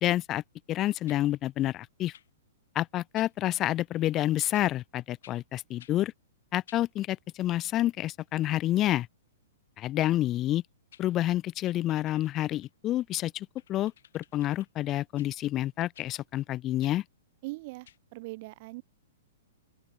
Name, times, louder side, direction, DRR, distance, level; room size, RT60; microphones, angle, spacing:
voice 1, 0.0-0.4 0.7-2.1 2.8-6.1 6.5-9.1 9.8-10.6 11.0-17.0, left 14 dB, 30° left, 0.4 m, -29 dB
sound 1, 1.1-1.2 2.1-2.3 3.2-3.3 4.5-4.7 5.2-5.4 5.8-6.0 6.7-6.9 10.5-10.6 10.9-11.1 11.6-12.7 13.6-14.7 15.2-15.3 15.9-16.1 16.8-17.0 17.8-18.0, left 10 dB, 65° left, 2.4 m, -56 dB
voice 2, 17.4-18.8, right 23 dB, 45° right, 0.4 m, -41 dB
open air
hypercardioid pair, 130°, 0 cm